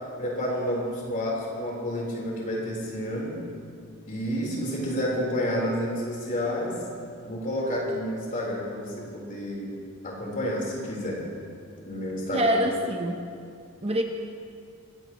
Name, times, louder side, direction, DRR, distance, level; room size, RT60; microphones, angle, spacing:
voice 1, 0.2-3.4 4.1-6.8 7.2-9.7 10.0-11.2 11.8-12.6, equal, 40° left, -3 dB, 4.1 m, -30 dB
voice 2, 12.3-13.2 13.8-14.0, equal, 30° right, 3 dB, 0.9 m, -25 dB
24.5 x 16.5 x 3.1 m, 2.4 s
head